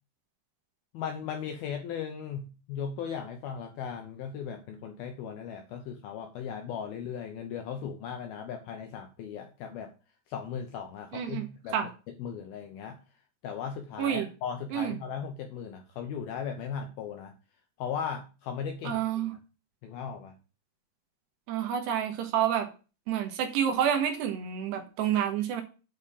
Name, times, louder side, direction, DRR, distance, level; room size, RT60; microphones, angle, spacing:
voice 1, 0.9-9.9 10.3-11.8 12.2-13.0 13.4-17.3 17.8-19.0 19.8-20.3, left 7 dB, 75° left, 5 dB, 2.3 m, -37 dB
voice 2, 11.1-11.5 11.7-11.9 14.0-14.3 14.7-15.0 18.8-19.3 21.5-22.7 23.1-25.6, right 9 dB, 70° right, 5 dB, 3.3 m, -28 dB
9.2 x 4.9 x 7.0 m, 0.33 s
omnidirectional pair, 5.3 m